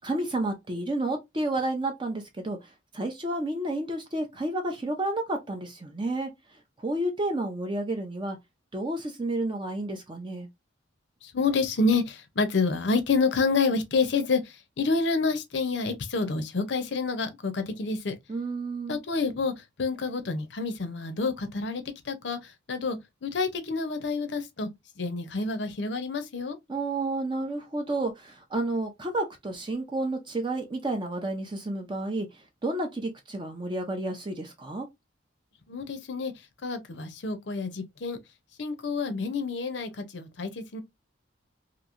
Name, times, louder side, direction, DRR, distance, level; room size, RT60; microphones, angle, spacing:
voice 1, 0.0-2.6 2.9-6.3 6.8-8.4 8.7-10.5 18.3-19.0 26.7-32.3 32.6-34.9, right 2 dB, 25° right, 0.5 m, -30 dB
voice 2, 11.2-18.1 18.9-24.7 25.0-26.6 35.7-36.3 36.6-38.2 38.6-40.8, left 4 dB, 65° left, 0.6 m, -28 dB
3.0 x 2.6 x 2.4 m
head